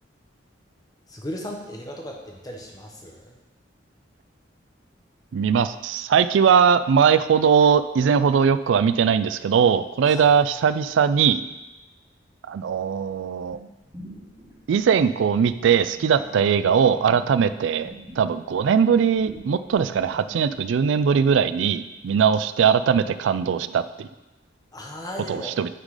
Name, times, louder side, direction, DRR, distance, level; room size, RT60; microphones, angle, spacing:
voice 1, 1.1-3.3 10.1-10.3 24.7-25.6, equal, 20° left, 1 dB, 1.0 m, -36 dB
voice 2, 5.3-11.4 12.5-13.6 14.7-24.1 25.3-25.7, right 7 dB, 80° right, 13 dB, 0.3 m, -20 dB
sound 1, 13.5-17.5 17.8-20.6, equal, 20° right, 1.9 m, -44 dB
9.8 x 3.8 x 4.9 m, 1.0 s
head